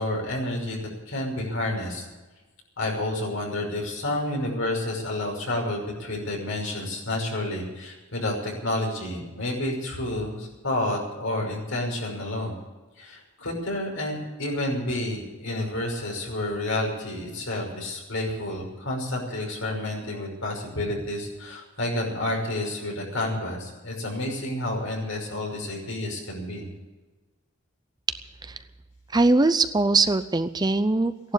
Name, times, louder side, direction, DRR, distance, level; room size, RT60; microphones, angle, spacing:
voice 1, 0.0-2.1 2.8-12.5 13.0-26.7, left 1 dB, 65° left, 0 dB, 5.7 m, -30 dB
voice 2, 29.1-31.3, right 3 dB, 20° right, 11 dB, 0.5 m, -21 dB
15.5 x 11.5 x 8.2 m, 1.2 s
head